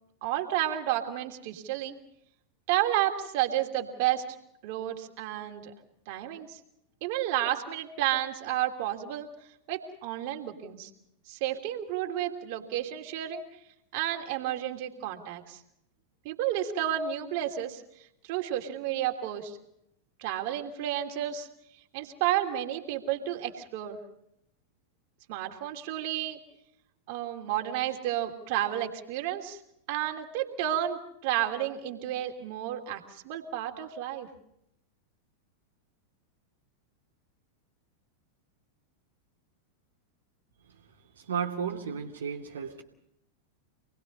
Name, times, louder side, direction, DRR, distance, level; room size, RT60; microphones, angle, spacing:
voice 1, 0.2-1.9 2.7-4.2 4.6-5.7 6.1-6.6 7.0-9.3 9.7-10.9 11.3-13.5 13.9-15.6 16.2-17.8 18.2-19.6 20.2-21.5 21.9-24.0 25.3-26.4 27.1-29.6 29.9-34.3, right 12 dB, 45° right, 3 dB, 3.1 m, -31 dB
voice 2, 41.2-42.8, right 7 dB, 65° right, -1 dB, 2.5 m, -33 dB
28.5 x 20.0 x 5.4 m, 0.76 s
figure-of-eight pair, 90°, 0 cm